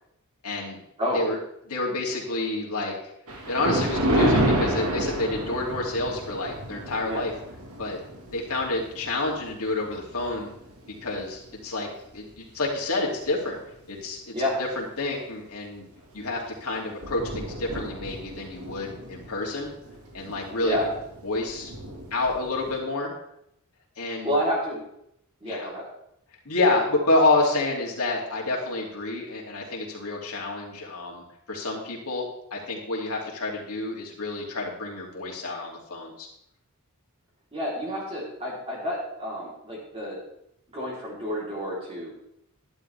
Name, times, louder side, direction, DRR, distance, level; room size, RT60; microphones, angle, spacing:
voice 1, 0.4-0.8 1.1-1.4 1.7-2.9 3.5-7.3 7.8-8.0 8.3-10.5 10.9-11.9 12.1-13.6 13.9-15.9 16.1-19.7 20.1-20.8 21.2-21.7 22.1-23.1 24.0-24.3 25.4-25.7 26.4-32.3 32.5-36.3, left 2 dB, 75° left, -3 dB, 2.8 m, -28 dB
Thunder, 3.3-11.8 12.3-12.6 13.3-13.4 13.7-13.8 16.0-16.2 16.5-16.6 16.8-22.8, right 1 dB, 75° right, 2.0 m, -31 dB
voice 2, 24.2-24.8 25.4-25.8 37.5-40.2 40.7-42.1, equal, 25° right, -5 dB, 3.6 m, -29 dB
11.5 x 11.5 x 3.5 m, 0.78 s
head